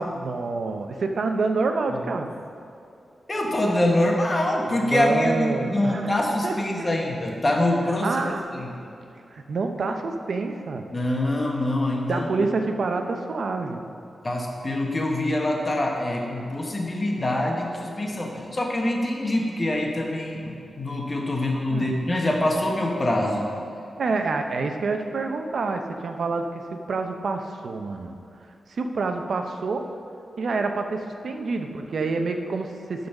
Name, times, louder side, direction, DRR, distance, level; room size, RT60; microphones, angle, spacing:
voice 1, 0.0-2.3 4.8-6.1 6.4-6.9 8.0-8.4 9.3-10.9 12.1-13.8 21.7-21.9 24.0-28.2 28.7-29.9 30.4-33.1, right 3 dB, 70° right, 5 dB, 0.7 m, -27 dB
voice 2, 3.3-8.7 10.9-12.5 14.2-23.5, left 1 dB, 30° left, 0 dB, 1.2 m, -25 dB
12.0 x 4.0 x 5.9 m, 2.5 s
wide cardioid pair, 105°, 0 cm